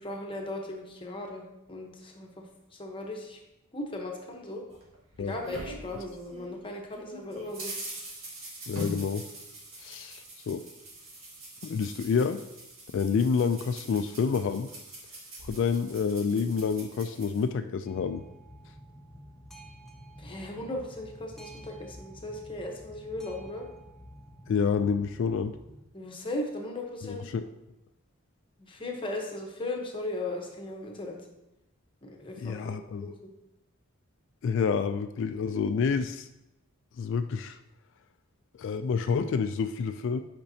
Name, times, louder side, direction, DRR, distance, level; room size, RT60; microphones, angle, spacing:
voice 1, 0.0-1.4 1.7-2.4 2.7-3.4 3.7-4.6 5.2-7.7 20.2-23.6 25.9-27.3 28.6-31.2 32.0-33.2, left 1 dB, 25° left, 1 dB, 0.9 m, -37 dB
sound 1, 4.7-6.6 6.9-17.4, right 1 dB, 65° right, 1.9 m, -43 dB
voice 2, 8.7-9.3 9.8-10.6 11.6-12.4 12.9-14.7 15.4-18.2 24.5-25.6 27.0-27.4 32.4-33.1 34.4-36.3 37.0-37.6 38.6-40.2, left 5 dB, 60° left, 9 dB, 0.3 m, -28 dB
Boat Water vehicle, 17.9-25.8, equal, ahead, 0.6 m, -49 dB
8.7 x 5.2 x 2.8 m, 0.92 s
head